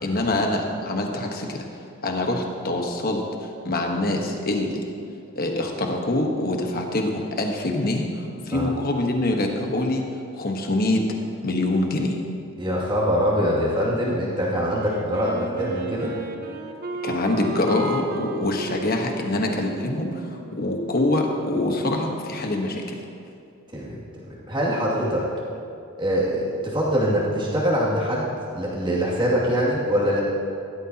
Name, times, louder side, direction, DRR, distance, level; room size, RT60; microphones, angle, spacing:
voice 1, 0.0-1.6 2.0-4.8 5.3-10.0 10.3-11.0 11.4-12.2 17.0-23.0, left 1 dB, 45° left, 2 dB, 1.3 m, -25 dB
voice 2, 12.6-16.2 23.7-24.0 24.3-25.3 26.0-28.3 28.5-30.2, equal, 20° right, -6 dB, 2.5 m, -23 dB
Wind instrument woodwind instrument, 14.7-21.4, right 1 dB, 45° right, 0.9 m, -34 dB
15.5 x 12.5 x 2.9 m, 2.5 s
head